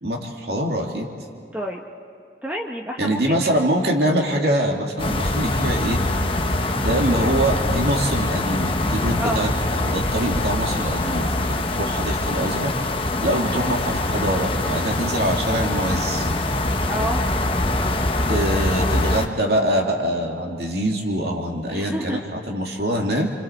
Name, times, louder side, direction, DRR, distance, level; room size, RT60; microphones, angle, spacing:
voice 1, 0.0-1.1 3.0-6.0 6.7-9.5 9.8-12.7 13.2-16.3 18.3-23.3, right 1 dB, 65° right, 1 dB, 2.5 m, -24 dB
voice 2, 1.5-1.8 2.4-3.5 9.1-9.5 16.8-17.2 21.7-22.2, equal, 10° right, 0 dB, 1.0 m, -29 dB
sound 1, 5.0-19.3, left 2 dB, 30° left, 1.0 m, -23 dB
29.5 x 25.0 x 4.5 m, 2.3 s
head